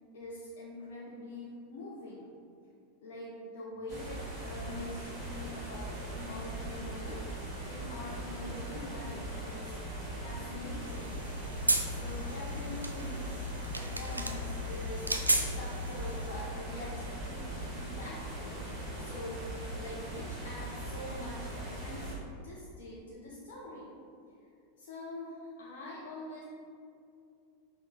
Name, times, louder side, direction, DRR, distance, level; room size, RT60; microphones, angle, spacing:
voice 1, 0.1-2.3 3.0-7.2 7.7-9.8 10.2-11.3 11.8-13.5 13.8-15.1 15.4-18.6 19.0-19.5 19.8-22.1 22.4-24.0 24.8-26.4, left 1 dB, 55° left, -6 dB, 0.6 m, -44 dB
sound 1, 3.9-22.1, right 1 dB, 25° right, 1.0 m, -40 dB
sound 2, 10.9-16.3, right 1 dB, 80° right, 0.3 m, -34 dB
5.8 x 2.2 x 3.8 m, 2.5 s
figure-of-eight pair, 90°, 0 cm